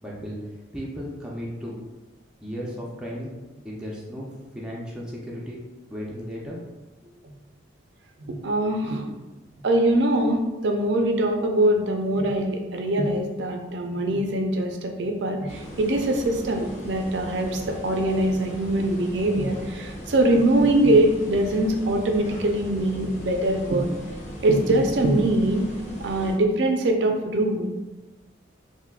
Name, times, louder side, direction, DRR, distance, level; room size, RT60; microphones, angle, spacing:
voice 1, 0.0-1.8 2.4-3.3 3.6-4.3 4.5-5.6 5.9-6.6 7.0-7.1, equal, 5° right, -5 dB, 0.4 m, -35 dB
voice 2, 8.3-9.2 9.6-23.9 24.4-25.7 26.0-27.7, right 1 dB, 60° right, 3 dB, 0.4 m, -23 dB
sound 1, 15.5-26.4, equal, 35° left, 0.7 m, -38 dB
3.5 x 2.6 x 2.3 m, 1.1 s
head